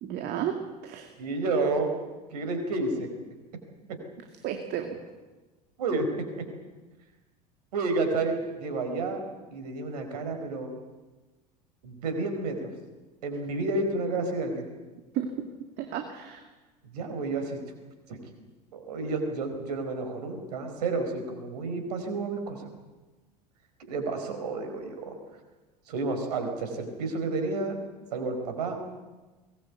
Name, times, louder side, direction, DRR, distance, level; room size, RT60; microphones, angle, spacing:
voice 1, 0.0-0.5 0.8-1.1 4.4-5.0 15.1-15.5 15.8-16.4, right 10 dB, 50° right, 5 dB, 2.3 m, -32 dB
voice 2, 1.2-1.9 2.3-3.1 3.9-4.0 5.8-6.1 6.4-6.5 7.7-9.2 9.5-10.7 11.8-12.7 13.2-14.7 16.9-17.6 18.1-18.2 18.7-22.6 23.9-25.1 25.9-27.8 28.1-28.8, right 3 dB, 70° right, 6 dB, 4.6 m, -30 dB
22.5 x 19.5 x 8.3 m, 1.2 s
figure-of-eight pair, 70°, 21 cm